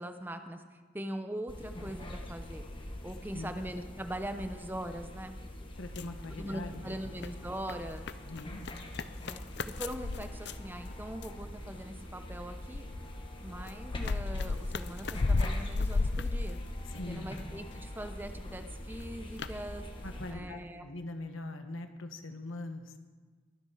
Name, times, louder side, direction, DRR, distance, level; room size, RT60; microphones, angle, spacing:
voice 1, 0.0-2.6 3.0-5.4 6.4-8.1 9.2-12.9 13.4-16.6 17.1-20.0 20.3-20.9, right 1 dB, 10° right, 7 dB, 0.8 m, -41 dB
sound 1, 1.5-20.3, left 1 dB, 25° left, 1.4 m, -44 dB
voice 2, 5.8-7.0 8.2-8.6 16.9-17.3 20.0-23.0, left 2 dB, 85° left, 7 dB, 1.2 m, -42 dB
sound 2, 5.8-6.8 7.1-11.4 12.1-17.4 17.7-18.6 19.0-19.1 19.4-19.5, left 3 dB, 55° left, 0.5 m, -34 dB
22.5 x 8.0 x 5.8 m, 1.5 s
head